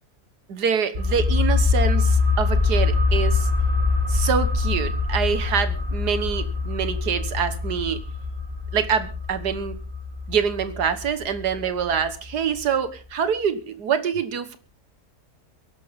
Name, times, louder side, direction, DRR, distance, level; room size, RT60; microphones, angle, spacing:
voice 1, 0.5-3.4 4.1-8.0 8.7-9.8 10.3-14.6, right 7 dB, 75° right, 12 dB, 1.9 m, -25 dB
sound 1, 0.9-12.3 12.6-12.7, left 4 dB, 45° right, 7.6 m, -24 dB
22.5 x 12.0 x 3.6 m, 0.34 s
omnidirectional pair, 1.8 m